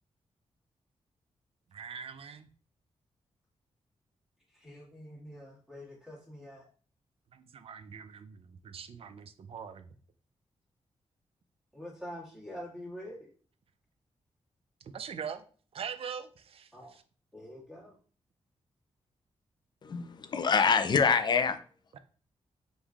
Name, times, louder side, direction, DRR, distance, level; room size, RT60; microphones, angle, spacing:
voice 1, 1.7-2.5 7.3-9.9 14.8-15.5 15.7-17.0 21.9-22.0, right 7 dB, 55° right, 0.4 m, -42 dB
voice 2, 4.5-6.6 11.7-13.3 16.7-16.9 17.3-17.9, equal, 5° right, 1.7 m, -45 dB
voice 3, 19.8-21.6, left 6 dB, 40° left, 0.4 m, -25 dB
5.3 x 3.2 x 2.4 m
wide cardioid pair, 140°, 11 cm